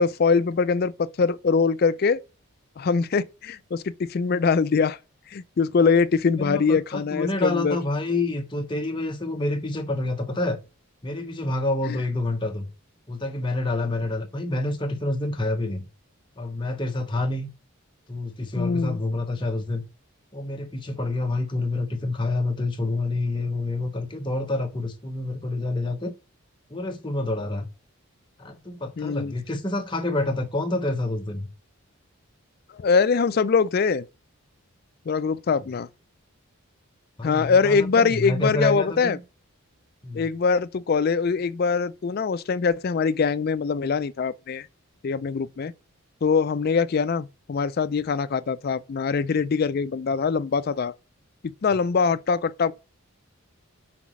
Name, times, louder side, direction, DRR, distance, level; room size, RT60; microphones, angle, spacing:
voice 1, 0.0-2.2 2.8-5.0 5.3-7.8 11.9-12.0 18.6-19.0 29.0-29.3 32.7-34.1 35.1-35.9 37.2-39.2 40.1-44.7 45.0-45.7 46.2-50.9 51.4-52.7, left 5 dB, 45° left, 0.3 m, -23 dB
voice 2, 6.4-10.6 11.0-12.7 13.1-15.9 16.4-17.5 18.1-19.8 20.3-26.1 26.7-27.7 28.4-31.5 37.2-39.2 40.0-40.3 51.7-51.8, left 2 dB, 20° left, 0.8 m, -28 dB
5.9 x 4.0 x 6.0 m
head